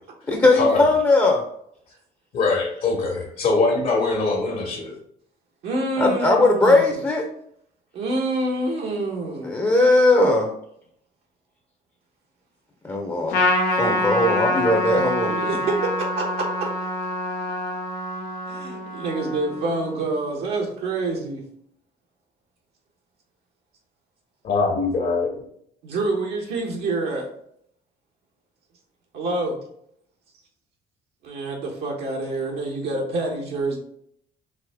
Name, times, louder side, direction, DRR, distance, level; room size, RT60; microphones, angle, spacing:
voice 1, 0.3-1.4 6.0-7.2 9.4-10.5 12.8-13.4 13.8-15.4, left 2 dB, 20° left, 1 dB, 0.7 m, -19 dB
voice 2, 2.3-4.9 24.4-25.3, left 3 dB, 60° left, -1 dB, 1.4 m, -22 dB
voice 3, 5.6-6.8 7.9-9.5 15.2-16.7 18.5-21.4 25.8-27.3 29.1-29.6 31.2-33.8, right 2 dB, 75° right, -2 dB, 1.2 m, -27 dB
Trumpet, 13.3-20.0, left 1 dB, 90° left, 0.9 m, -25 dB
4.9 x 2.7 x 3.5 m, 0.70 s
cardioid pair, 110°, 17 cm